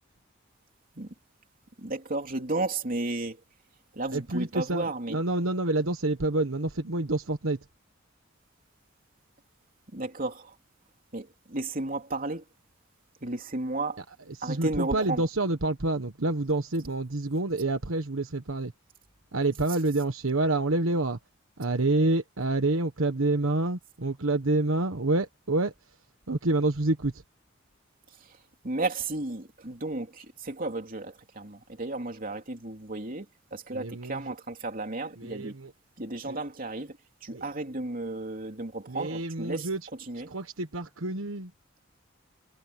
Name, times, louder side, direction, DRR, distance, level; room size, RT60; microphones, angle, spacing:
voice 1, 1.8-3.4 3.9-5.2 9.9-10.5 11.1-12.4 13.2-14.0 14.4-15.2 28.6-33.3 33.5-35.5 36.0-39.7 40.1-40.3, right 2 dB, 45° right, 3.2 m, -33 dB
voice 2, 4.1-7.6 14.4-18.7 19.3-21.2 21.6-25.7 26.3-27.2 33.7-34.3 35.2-35.7 36.2-36.4 37.3-37.4 38.9-39.8 40.1-41.5, right 2 dB, 90° right, 1.3 m, -28 dB
head